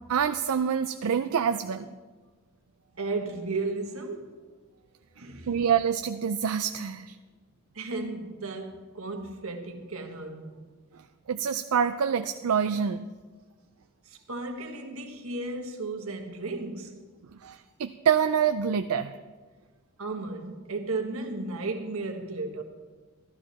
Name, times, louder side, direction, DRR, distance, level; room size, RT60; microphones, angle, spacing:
voice 1, 0.1-1.9 5.5-7.2 11.3-13.1 17.4-19.2, right 7 dB, 85° right, 0.4 m, -26 dB
voice 2, 3.0-4.4 5.1-5.6 7.7-10.7 14.0-17.0 20.0-22.6, right 3 dB, 70° right, 1.5 m, -34 dB
14.0 x 12.5 x 4.2 m
head